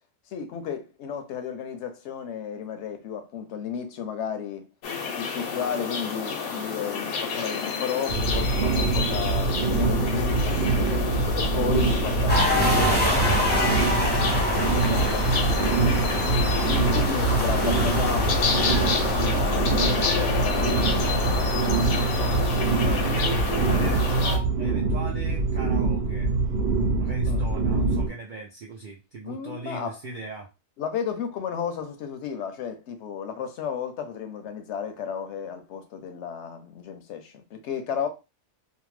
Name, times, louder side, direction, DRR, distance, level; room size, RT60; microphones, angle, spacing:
voice 1, 0.3-4.7 5.1-10.6 11.4-16.2 16.8-21.6 27.3-27.5 29.2-30.0 30.8-38.1, left 7 dB, 65° left, 0.7 m, -34 dB
sound 1, 4.8-24.4, left 5 dB, 85° left, 1.1 m, -29 dB
sound 2, 8.1-28.1, right 4 dB, 60° right, 0.8 m, -24 dB
sound 3, 12.3-24.2, left 1 dB, 10° left, 0.5 m, -29 dB
voice 2, 22.2-22.6 22.9-26.3 27.0-30.5, right 4 dB, 90° right, 0.4 m, -38 dB
2.7 x 2.0 x 3.1 m
omnidirectional pair, 1.4 m